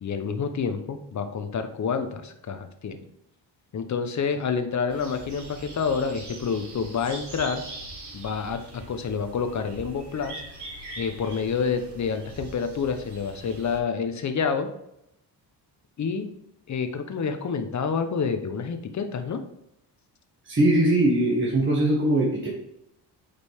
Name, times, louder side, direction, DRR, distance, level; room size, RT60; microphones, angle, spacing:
voice 1, 0.0-3.0 3.7-7.6 8.1-8.6 8.9-10.4 11.0-14.7 16.0-16.3 16.7-19.4, left 5 dB, 45° left, 8 dB, 0.9 m, -28 dB
sound 1, 4.9-13.8, right 1 dB, 70° right, 2.8 m, -42 dB
voice 2, 20.5-22.5, right 1 dB, 30° right, -4 dB, 1.7 m, -21 dB
8.7 x 5.3 x 3.5 m, 0.81 s
cardioid pair, 120°, 41 cm